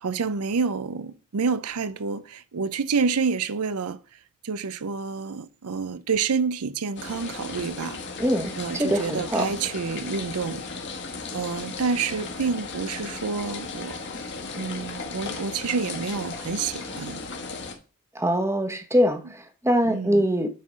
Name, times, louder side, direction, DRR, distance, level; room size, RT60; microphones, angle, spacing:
voice 1, 0.0-4.0 4.4-8.0 8.5-10.6 11.3-17.2 19.8-20.3, right 5 dB, 85° right, 0.6 m, -28 dB
sound 1, 7.0-17.7, left 4 dB, 50° left, 1.3 m, -36 dB
voice 2, 8.2-9.4 18.1-20.5, equal, 10° right, 0.9 m, -23 dB
8.2 x 3.8 x 6.2 m
head